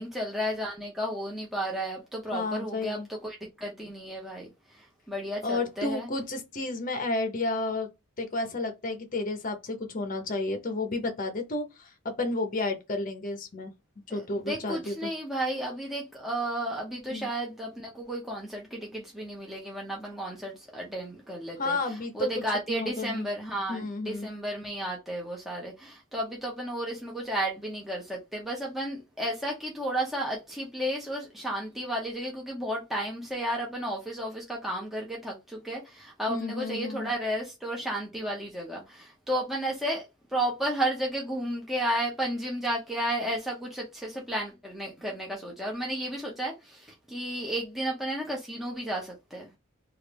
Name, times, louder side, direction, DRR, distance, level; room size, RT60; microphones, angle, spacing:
voice 1, 0.0-6.1 14.1-49.5, right 1 dB, ahead, 0.7 m, -33 dB
voice 2, 2.3-3.1 5.4-7.9 8.2-13.7 14.1-15.1 17.1-17.3 21.6-22.3 22.7-23.3 23.7-24.3 36.3-37.1, left 2 dB, 40° left, 0.7 m, -31 dB
3.2 x 2.4 x 3.3 m
head